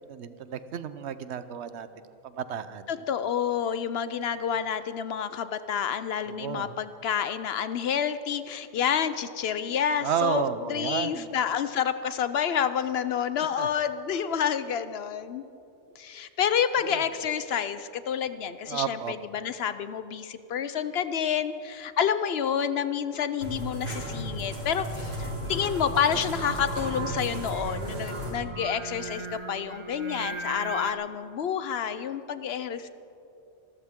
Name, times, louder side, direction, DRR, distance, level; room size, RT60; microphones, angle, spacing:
voice 1, 0.1-1.9 2.2-2.9 6.3-6.8 10.0-11.3 13.6-13.7 16.8-17.0 18.7-19.1 26.1-26.2, right 8 dB, 70° right, 13 dB, 0.9 m, -32 dB
voice 2, 2.9-10.4 10.7-15.4 16.0-32.9, left 8 dB, 65° left, 12 dB, 0.8 m, -29 dB
sound 1, 23.4-28.3, right 1 dB, 90° right, 4.8 m, -34 dB
Singing, 25.9-30.9, right 2 dB, 30° right, 0.7 m, -39 dB
26.5 x 13.5 x 3.6 m, 2.7 s
omnidirectional pair, 1.2 m